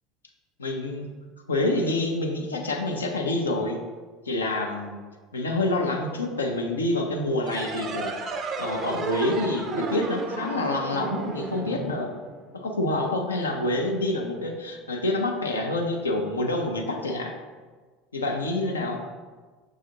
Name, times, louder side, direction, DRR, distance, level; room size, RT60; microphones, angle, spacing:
voice 1, 0.6-1.1 1.5-3.8 4.3-5.0 5.3-8.1 8.6-12.1 12.5-17.3 18.1-19.0, left 2 dB, 80° left, 2 dB, 0.5 m, -27 dB
sound 1, 7.4-12.7, right 3 dB, 40° right, 0.4 m, -32 dB
6.4 x 2.4 x 2.8 m, 1.4 s
figure-of-eight pair, 70°, 0 cm